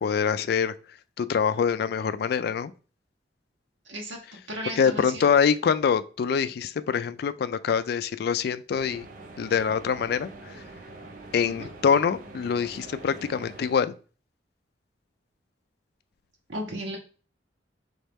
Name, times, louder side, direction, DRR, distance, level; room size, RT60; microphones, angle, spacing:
voice 1, 0.0-0.7 1.2-2.7 4.8-9.1 9.4-10.6 11.3-14.0, left 6 dB, 60° left, 0.3 m, -25 dB
voice 2, 3.8-4.2 4.5-5.3 11.4-11.7 16.5-17.0, equal, 85° right, 1.1 m, -35 dB
sound 1, 8.7-13.7, right 2 dB, 50° right, 0.6 m, -44 dB
4.1 x 3.6 x 3.5 m
head